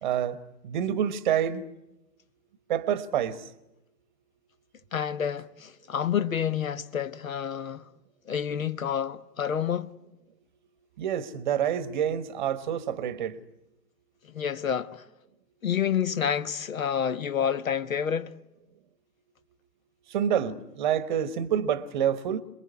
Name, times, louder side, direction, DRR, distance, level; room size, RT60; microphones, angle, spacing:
voice 1, 0.0-1.6 2.7-3.4 11.0-13.4 20.1-22.4, right 9 dB, 30° right, 1.2 m, -27 dB
voice 2, 4.9-7.9 8.3-9.9 14.2-15.0 15.6-18.3, left 8 dB, 55° left, 1.2 m, -29 dB
27.5 x 21.5 x 9.5 m
figure-of-eight pair, 125°, 49 cm